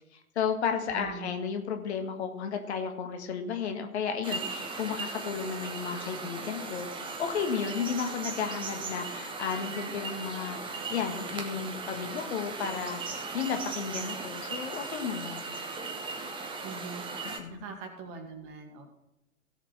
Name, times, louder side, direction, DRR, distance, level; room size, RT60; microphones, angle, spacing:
voice 1, 0.3-15.5 17.2-17.6, left 7 dB, 50° left, 6 dB, 1.6 m, -33 dB
voice 2, 0.9-1.3 16.6-17.0 17.5-18.9, right 5 dB, 35° right, 4 dB, 2.2 m, -42 dB
sound 1, 4.2-17.4, right 4 dB, 10° right, 1.0 m, -38 dB
16.5 x 6.0 x 4.8 m, 0.95 s
figure-of-eight pair, 110°, 41 cm